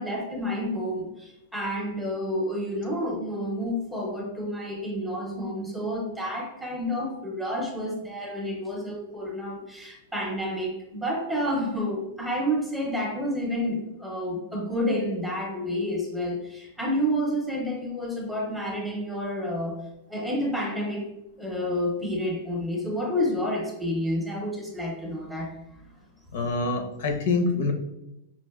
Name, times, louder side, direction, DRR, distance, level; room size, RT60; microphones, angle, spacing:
voice 1, 0.0-19.8 20.1-21.1 21.4-25.5, equal, 5° right, -2 dB, 0.6 m, -29 dB
voice 2, 26.3-27.7, left 3 dB, 60° left, 5 dB, 0.7 m, -25 dB
5.2 x 2.5 x 2.3 m, 0.88 s
supercardioid pair, 160°, 0 cm